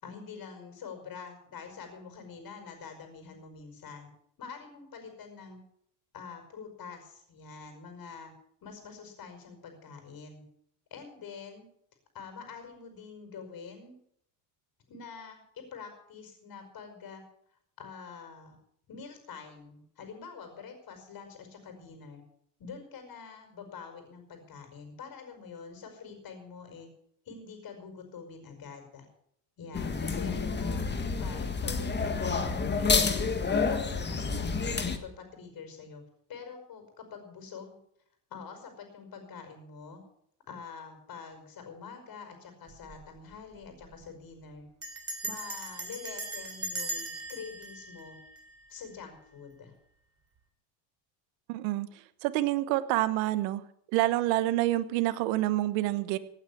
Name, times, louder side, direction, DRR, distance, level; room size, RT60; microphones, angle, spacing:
voice 1, 0.0-4.1 4.4-5.6 6.1-8.3 8.6-10.4 10.9-11.6 12.1-13.9 14.9-15.4 15.7-17.2 17.8-18.6 18.9-22.2 22.6-26.9 27.3-29.1 29.6-30.8 31.2-32.5 32.8-36.0 36.3-37.8 38.3-40.0 40.5-44.7 45.2-48.2 48.7-49.7, left 5 dB, 45° left, 6 dB, 5.3 m, -46 dB
sound 1, 29.7-35.0, left 4 dB, 20° left, 1.7 m, -29 dB
Bell, 42.7-43.1 43.3-43.4 43.6-44.0 44.8-48.9, right 2 dB, 30° right, 3.7 m, -39 dB
voice 2, 51.5-51.9 52.2-53.6 53.9-56.2, right 16 dB, 85° right, 13 dB, 1.2 m, -27 dB
17.0 x 8.9 x 7.2 m, 0.69 s
supercardioid pair, 105°, 49 cm